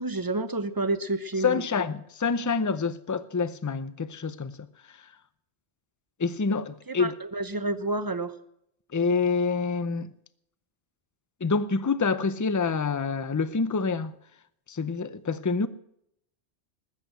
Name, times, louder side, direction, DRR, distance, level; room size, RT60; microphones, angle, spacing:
voice 1, 0.0-1.6 6.9-8.3, right 2 dB, 20° right, 0.8 m, -29 dB
voice 2, 1.4-4.7 6.2-7.1 8.9-10.1 11.4-14.1 14.7-15.7, left 4 dB, 25° left, 0.4 m, -27 dB
20.0 x 8.2 x 7.6 m
omnidirectional pair, 1.2 m